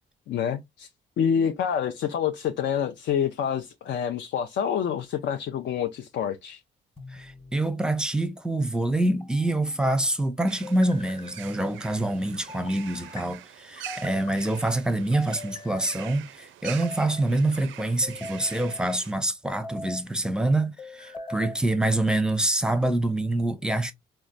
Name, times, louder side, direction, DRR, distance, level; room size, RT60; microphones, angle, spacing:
voice 1, 0.3-0.9 1.2-6.6, left 8 dB, 65° left, 0.5 m, -27 dB
sound 1, 7.0-7.6 9.0-9.8 10.6-11.4 12.5-13.2 13.9-14.5 15.1-16.0 16.6-17.3 18.0-18.9 19.5-20.1 20.8-21.6, left 2 dB, 25° left, 1.0 m, -42 dB
voice 2, 7.1-23.9, right 1 dB, 5° right, 0.6 m, -26 dB
sound 2, 10.5-19.1, right 12 dB, 75° right, 0.4 m, -44 dB
4.4 x 2.1 x 2.5 m
cardioid pair, 90°, 20 cm